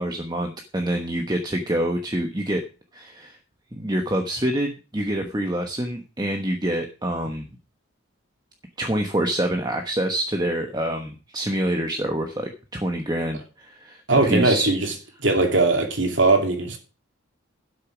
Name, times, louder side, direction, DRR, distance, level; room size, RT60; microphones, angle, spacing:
voice 1, 0.0-2.6 2.9-3.4 3.7-7.5 8.8-14.7, right 1 dB, 20° right, 1.2 m, -26 dB
voice 2, 14.1-14.8 15.2-16.8, right 3 dB, 65° right, 2.7 m, -19 dB
12.0 x 6.7 x 6.0 m
head